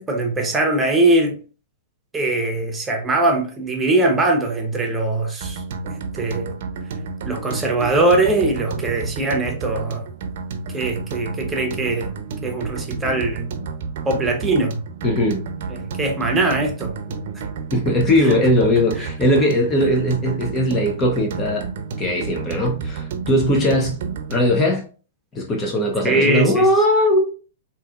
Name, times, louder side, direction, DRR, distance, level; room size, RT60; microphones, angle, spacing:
voice 1, 0.0-1.3 2.1-6.6 7.3-10.0 10.7-12.1 12.4-13.5 14.0-14.8 15.7-17.2 19.0-19.1 26.0-26.7, right 2 dB, 15° right, 0.8 m, -21 dB
sound 1, 5.4-24.6, right 5 dB, 60° right, 0.6 m, -30 dB
voice 2, 15.0-15.4 17.7-21.7 22.0-24.0 24.3-24.8 25.3-27.3, left 1 dB, 25° left, 0.5 m, -19 dB
3.9 x 2.7 x 2.3 m
hypercardioid pair, 135°, 0 cm